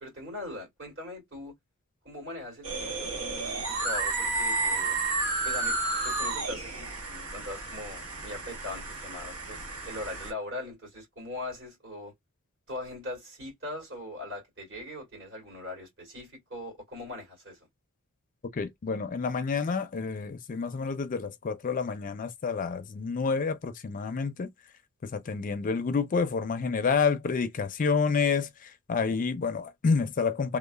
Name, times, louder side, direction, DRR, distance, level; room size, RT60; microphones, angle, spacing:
voice 1, 0.0-1.5 2.0-5.0 5.4-9.6 9.9-12.1 12.7-17.6, left 1 dB, 55° right, 2.0 m, -41 dB
sound 1, 2.6-10.3, right 3 dB, 70° right, 1.0 m, -32 dB
voice 2, 18.5-24.5 25.0-30.6, left 5 dB, 40° left, 0.4 m, -29 dB
3.0 x 2.0 x 2.2 m
head